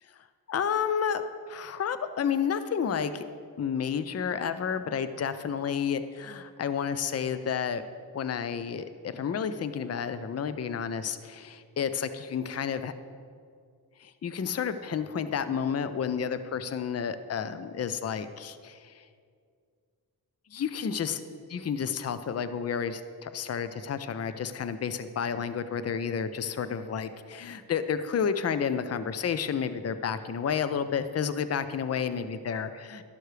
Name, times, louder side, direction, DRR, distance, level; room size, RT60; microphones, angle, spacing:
voice 1, 0.5-1.2 1.5-3.2 3.6-7.9 8.1-12.9 14.0-19.0 20.5-21.2 21.5-33.1, left 7 dB, 40° left, 11 dB, 0.5 m, -31 dB
12.5 x 11.5 x 3.3 m, 2.2 s
wide cardioid pair, 130°, 39 cm